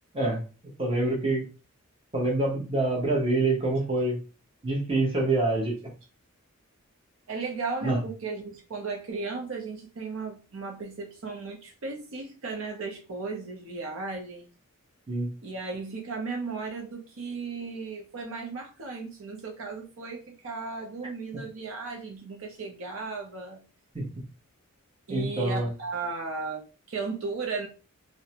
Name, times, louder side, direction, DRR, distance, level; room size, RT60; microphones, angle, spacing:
voice 1, 0.8-1.4 2.1-4.2 4.6-5.8 7.8-8.0 15.1-15.3 23.9-24.0 25.1-25.7, right 2 dB, 25° right, 0.8 m, -26 dB
voice 2, 7.3-14.5 15.4-23.6 25.1-27.7, right 4 dB, 65° right, 0.6 m, -35 dB
2.6 x 2.1 x 2.8 m
head